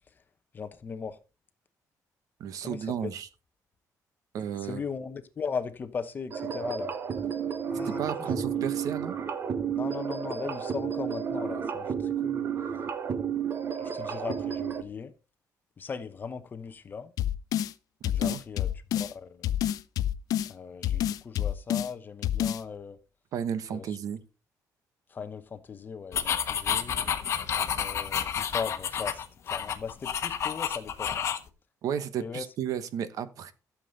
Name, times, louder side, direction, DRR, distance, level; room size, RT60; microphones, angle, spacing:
voice 1, 0.5-1.2 2.6-3.1 4.6-6.9 7.7-8.7 9.7-12.5 13.8-15.1 15.8-17.1 18.1-19.5 20.5-23.0 23.7-24.0 25.1-27.0 27.7-31.3 32.2-32.5, left 5 dB, 30° left, 1.0 m, -38 dB
voice 2, 2.4-3.3 4.3-4.8 7.8-9.1 18.0-18.4 23.3-24.2 31.8-33.5, right 8 dB, 65° right, 1.0 m, -33 dB
sound 1, 6.3-14.8, right 7 dB, 35° right, 1.0 m, -32 dB
sound 2, 17.2-17.7 18.0-19.1 19.4-20.5 20.8-21.9 22.2-22.6, left 11 dB, 70° left, 0.6 m, -28 dB
sound 3, 26.1-31.5, left 8 dB, 45° left, 1.2 m, -30 dB
13.0 x 7.4 x 4.0 m
cardioid pair, 165°, 6 cm